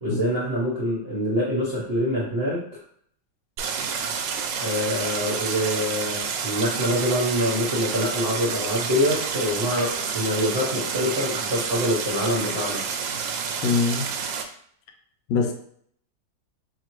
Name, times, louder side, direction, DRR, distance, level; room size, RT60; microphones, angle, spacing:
voice 1, 0.0-2.8 4.6-12.8, equal, 40° right, -6 dB, 1.0 m, -25 dB
Stream, 3.6-14.4, right 6 dB, 85° right, 1.3 m, -29 dB
voice 2, 13.6-14.0 15.3-15.5, left 5 dB, 80° left, 4 dB, 1.3 m, -22 dB
5.0 x 2.7 x 3.0 m, 0.63 s
omnidirectional pair, 2.0 m